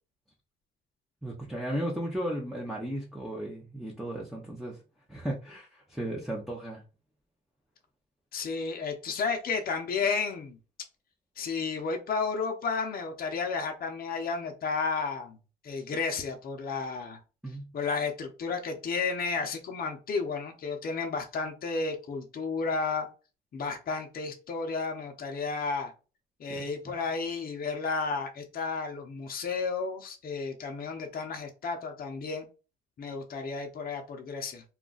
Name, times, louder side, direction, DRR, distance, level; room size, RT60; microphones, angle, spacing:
voice 1, 1.2-4.8 5.1-6.8 17.4-17.7 26.5-26.9, right 1 dB, ahead, -3 dB, 0.7 m, -35 dB
voice 2, 8.3-10.6 11.4-15.4 15.6-17.2 17.7-23.1 23.5-25.9 26.4-32.5 33.0-34.6, left 4 dB, 50° left, 3 dB, 0.7 m, -32 dB
2.4 x 2.2 x 3.8 m, 0.33 s
cardioid pair, 90°, 20 cm